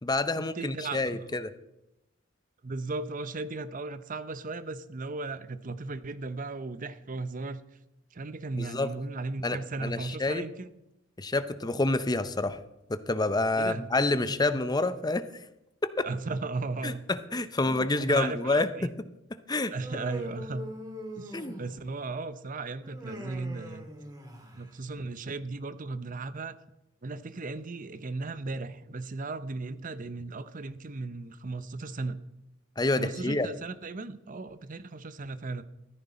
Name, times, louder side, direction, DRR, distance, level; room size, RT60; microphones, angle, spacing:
voice 1, 0.0-1.5 8.6-8.9 9.4-10.5 11.2-12.6 12.9-15.3 15.8-16.1 16.8-18.9 19.5-19.7 21.3-21.6 32.8-33.5, left 2 dB, 20° left, 0.6 m, -28 dB
voice 2, 0.6-1.3 2.6-7.6 8.1-10.7 13.6-13.9 16.0-17.0 17.7-18.9 19.7-20.7 21.2-23.9 24.5-26.5 27.0-32.2 33.0-35.6, right 3 dB, 45° right, 0.7 m, -36 dB
Human voice, 19.7-22.0 22.8-24.7, equal, 20° right, 3.2 m, -42 dB
14.5 x 13.5 x 4.2 m
head